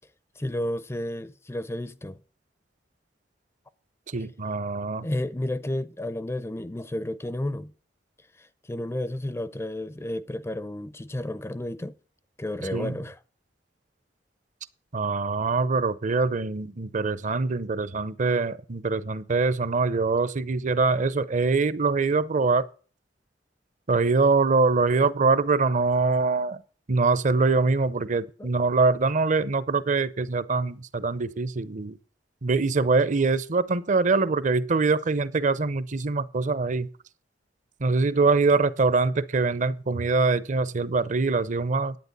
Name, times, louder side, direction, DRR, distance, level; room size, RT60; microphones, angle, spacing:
voice 1, 0.4-2.2 4.2-4.3 5.0-7.7 8.3-11.9 12.4-13.2 28.4-28.5, left 1 dB, 15° left, 0.4 m, -32 dB
voice 2, 4.1-5.1 12.7-12.9 14.9-22.6 23.9-26.6 26.9-32.0 32.4-36.9 37.8-42.0, right 4 dB, 45° right, 0.7 m, -24 dB
10.5 x 8.9 x 5.3 m
head